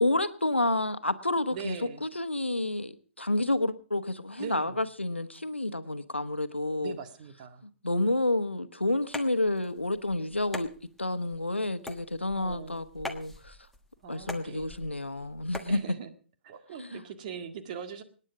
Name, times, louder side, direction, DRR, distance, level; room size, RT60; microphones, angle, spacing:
voice 1, 0.0-7.0 7.8-10.7 11.0-13.6 14.1-15.8 16.8-17.0, left 2 dB, 90° left, 11 dB, 1.2 m, -29 dB
voice 2, 1.5-2.1 4.4-4.8 6.8-7.6 12.4-12.9 14.0-14.9 15.7-16.1 16.4-18.0, right 7 dB, 40° right, 8 dB, 1.9 m, -41 dB
sound 1, 9.0-15.8, left 2 dB, 5° left, 1.3 m, -44 dB
26.0 x 9.8 x 4.9 m, 0.40 s
figure-of-eight pair, 120°, 6 cm